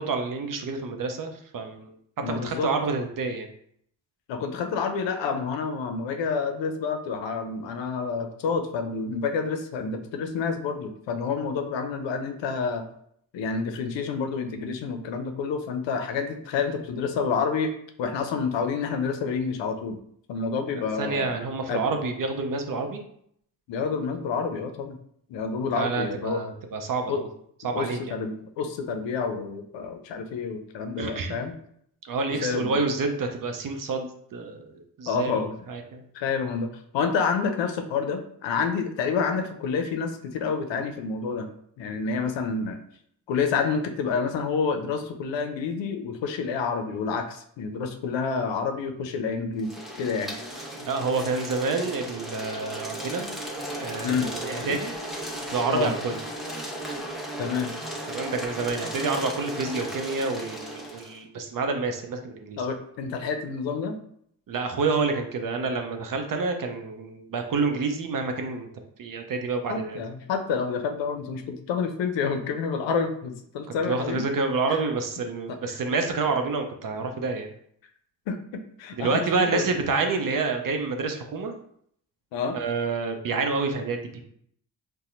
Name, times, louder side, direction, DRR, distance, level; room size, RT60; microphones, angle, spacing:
voice 1, 0.0-1.9 2.3-3.5 20.7-23.0 25.7-27.3 27.6-28.1 31.0-31.4 32.0-34.7 35.0-35.3 35.7-36.0 50.8-53.3 53.8-54.9 55.5-56.2 58.1-62.6 64.5-68.7 69.0-70.0 73.9-77.5 79.0-81.5 82.5-84.2, right 4 dB, 45° right, 5 dB, 0.6 m, -28 dB
voice 2, 2.2-2.7 4.3-12.8 13.3-17.7 18.0-20.0 20.3-21.3 21.7-21.8 23.7-25.0 25.3-26.4 27.1-27.2 27.7-31.5 32.4-32.9 35.1-35.5 36.1-41.5 41.8-42.8 43.3-50.3 54.0-54.3 54.6-54.8 55.7-55.9 57.4-57.7 62.6-64.0 69.7-74.2 74.7-74.8 75.5-75.8 78.3-79.7 82.3-82.6, left 5 dB, 65° left, 7 dB, 0.6 m, -28 dB
sound 1, 49.6-61.2, right 1 dB, ahead, 1.1 m, -35 dB
4.1 x 2.2 x 2.5 m, 0.67 s
hypercardioid pair, 45°, 48 cm